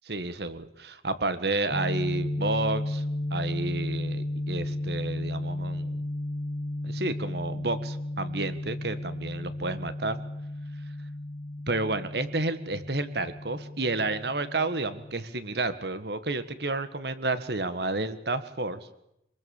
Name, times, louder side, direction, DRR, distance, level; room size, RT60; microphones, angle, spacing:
voice 1, 0.1-3.0 3.3-6.0 6.8-10.2 11.7-18.8, right 2 dB, 65° right, 12 dB, 1.7 m, -31 dB
sound 1, 1.7-15.2, left 1 dB, 45° left, 1.8 m, -34 dB
27.0 x 21.0 x 7.2 m, 0.80 s
head